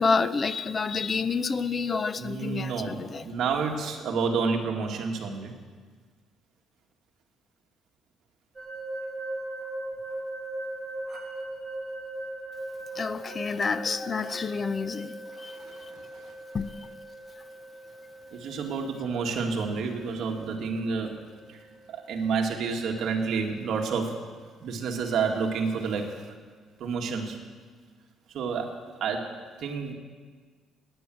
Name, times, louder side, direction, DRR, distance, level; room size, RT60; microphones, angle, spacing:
voice 1, 0.0-3.2 13.0-15.1 15.4-15.6 16.5-16.8, left 4 dB, 25° left, 14 dB, 0.5 m, -28 dB
voice 2, 2.2-5.5 15.3-16.3 18.3-21.2 21.5-21.6 21.9-24.1 24.6-26.2 26.8-27.4 28.3-28.7 29.0-29.2 29.6-29.9, right 5 dB, 55° right, 2 dB, 1.9 m, -29 dB
sound 1, 8.6-23.4, right 1 dB, 15° right, 2.7 m, -40 dB
18.5 x 9.7 x 7.7 m, 1.5 s
cardioid pair, 165°, 0 cm